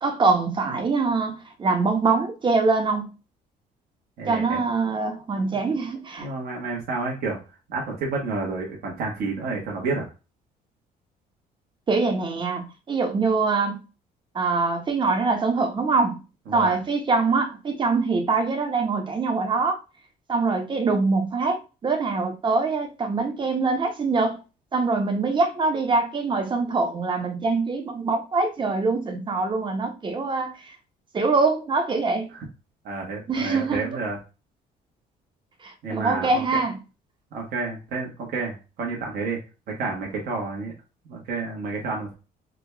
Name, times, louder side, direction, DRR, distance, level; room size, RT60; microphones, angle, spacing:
voice 1, 0.0-3.1 4.3-6.3 11.9-13.8 14.3-16.2 16.5-19.8 20.3-24.4 24.7-30.8 31.1-32.3 33.3-33.8 35.6-36.8, right 4 dB, 30° right, 0.9 m, -24 dB
voice 2, 4.2-4.6 6.2-7.4 7.7-10.1 16.5-16.8 32.3-32.4 32.8-34.2 35.8-36.4 37.3-39.4 39.7-40.7 41.1-42.1, right 3 dB, 65° right, 1.4 m, -30 dB
3.8 x 2.4 x 3.3 m
cardioid pair, 110°, 17 cm